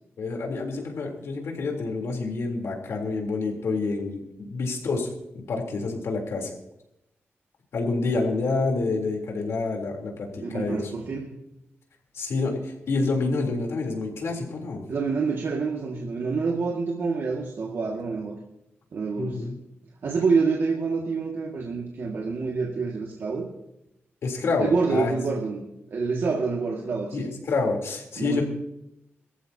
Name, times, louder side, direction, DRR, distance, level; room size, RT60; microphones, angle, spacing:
voice 1, 0.2-6.5 7.7-10.8 12.1-14.8 19.2-19.5 24.2-25.1 27.1-28.4, left 3 dB, 80° left, 1 dB, 3.5 m, -28 dB
voice 2, 10.4-11.3 14.9-18.4 18.9-19.5 20.0-23.5 24.6-27.3 28.2-28.4, right 4 dB, 60° right, -1 dB, 2.0 m, -27 dB
23.0 x 14.0 x 2.8 m, 0.84 s
wide cardioid pair, 145°, 4 cm